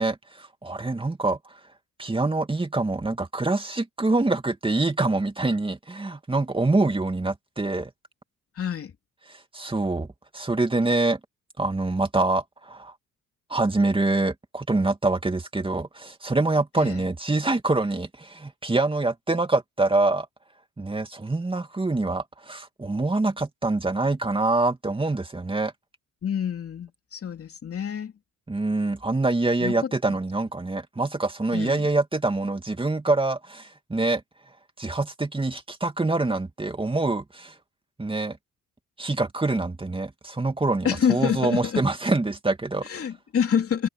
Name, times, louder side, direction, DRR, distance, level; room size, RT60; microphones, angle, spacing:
voice 1, 0.0-1.4 2.0-7.9 9.5-10.1 10.3-11.2 11.6-12.9 13.5-20.3 20.8-25.7 28.5-34.2 34.8-37.5 38.0-38.4 39.0-42.9, right 2 dB, 15° right, 2.6 m, -25 dB
voice 2, 8.5-8.9 16.8-17.1 26.2-28.1 29.6-29.7 31.5-31.9 40.8-41.9 42.8-43.9, left 8 dB, 50° left, 3.0 m, -27 dB
cardioid pair, 90°, 30 cm